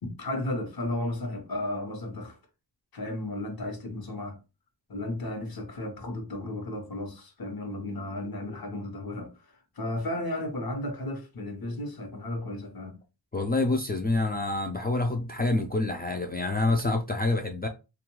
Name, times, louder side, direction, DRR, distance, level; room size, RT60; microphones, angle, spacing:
voice 1, 0.0-2.4 2.9-4.4 4.9-13.0, left 1 dB, 60° left, 1.0 m, -34 dB
voice 2, 13.3-17.7, left 2 dB, 25° left, 0.4 m, -27 dB
2.4 x 2.2 x 3.0 m
wide cardioid pair, 85°, 41 cm